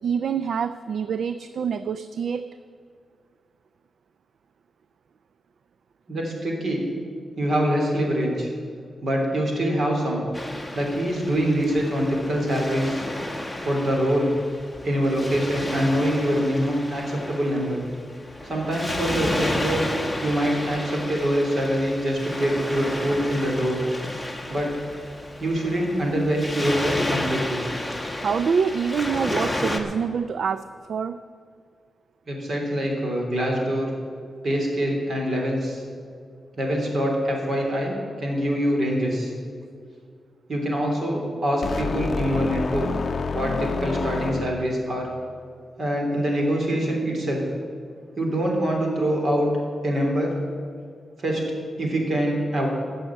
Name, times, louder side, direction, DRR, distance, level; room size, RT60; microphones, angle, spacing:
voice 1, 0.0-2.5 28.2-31.2, right 6 dB, 65° right, 13 dB, 0.4 m, -26 dB
voice 2, 6.1-6.8 7.4-8.5 9.0-10.2 10.7-13.1 13.6-14.3 14.8-17.8 18.4-19.8 20.2-23.8 24.5-24.7 25.4-27.6 32.3-33.9 34.4-35.8 36.6-39.3 40.5-42.9 43.3-45.1 45.8-47.4 48.2-49.5 49.8-50.3 51.2-51.4 51.8-52.7, equal, 45° right, 0 dB, 3.3 m, -24 dB
Waves surf, 10.3-29.8, left 1 dB, ahead, 1.2 m, -32 dB
sound 1, 41.6-44.9, left 4 dB, 40° left, 0.7 m, -28 dB
16.0 x 6.3 x 8.8 m, 2.1 s
wide cardioid pair, 160°, 0 cm